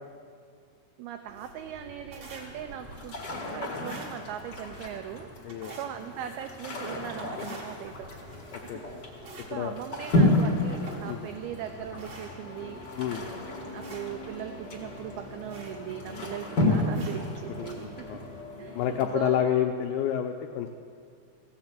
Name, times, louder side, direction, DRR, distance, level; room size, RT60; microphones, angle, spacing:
voice 1, 1.0-8.1 8.6-8.8 9.5-12.8 13.7-18.3 18.6-19.5, right 10 dB, 85° right, 7 dB, 2.2 m, -39 dB
sound 1, 1.3-18.4, right 1 dB, 55° right, 2.0 m, -48 dB
sound 2, 2.2-19.0, left 2 dB, 70° left, 1.0 m, -32 dB
voice 2, 5.5-5.8 8.5-8.8 9.5-9.7 11.1-11.2 13.0-13.2 17.6-18.2 18.8-20.7, left 10 dB, 85° left, 4 dB, 2.3 m, -29 dB
16.0 x 6.3 x 7.4 m, 2.1 s
omnidirectional pair, 5.0 m